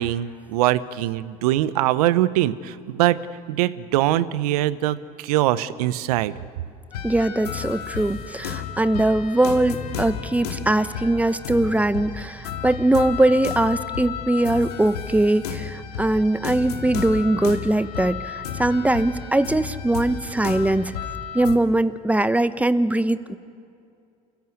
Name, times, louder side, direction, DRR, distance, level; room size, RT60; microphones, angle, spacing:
voice 1, 0.0-3.2 3.5-6.3, right 14 dB, 75° right, 16 dB, 0.9 m, -22 dB
sound 1, 6.9-21.6, left 7 dB, 80° left, 2.1 m, -33 dB
voice 2, 7.0-21.0 21.3-23.4, right 1 dB, 5° right, 13 dB, 1.2 m, -21 dB
28.0 x 15.0 x 8.4 m, 2.4 s
hypercardioid pair, 65°, 20 cm